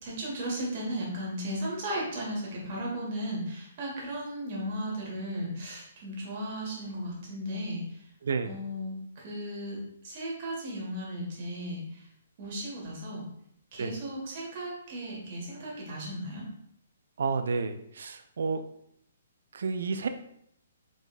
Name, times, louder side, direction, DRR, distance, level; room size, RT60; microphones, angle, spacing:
voice 1, 0.0-8.0 8.4-9.8 10.0-12.1 12.4-13.2 13.7-16.4, equal, 40° right, -3 dB, 1.8 m, -35 dB
voice 2, 17.2-18.6 19.5-20.1, right 4 dB, 60° right, 8 dB, 0.3 m, -30 dB
4.8 x 4.0 x 2.5 m, 0.72 s
figure-of-eight pair, 125°, 0 cm